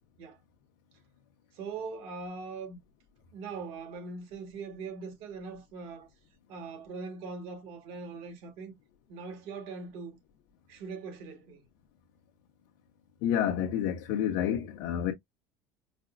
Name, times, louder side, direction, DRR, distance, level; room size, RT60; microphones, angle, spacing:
voice 1, 1.5-2.8 3.3-6.1 6.5-8.7 9.1-10.2 10.7-11.6, right 4 dB, 65° right, 1.5 m, -41 dB
voice 2, 13.2-15.1, left 10 dB, 70° left, 0.7 m, -29 dB
5.1 x 2.0 x 2.4 m
supercardioid pair, 115°, 10 cm